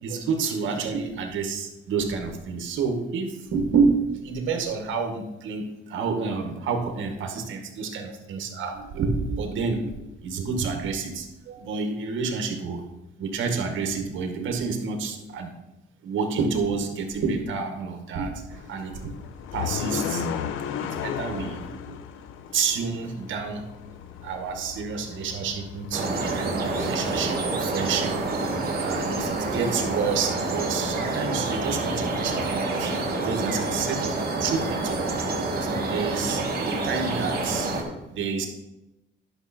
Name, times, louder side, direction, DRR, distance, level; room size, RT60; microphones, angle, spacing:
voice 1, 0.0-12.8 13.2-15.5 16.0-19.1 19.5-20.4 20.8-22.0 22.5-23.7 24.2-28.5 28.8-38.5, right 5 dB, 75° right, 4 dB, 1.9 m, -29 dB
sound 1, 18.5-27.5, left 8 dB, 85° left, 0.7 m, -35 dB
sound 2, 25.9-37.8, right 2 dB, 50° right, 2.4 m, -28 dB
11.0 x 6.4 x 4.4 m, 0.94 s
cardioid pair, 90°, 20 cm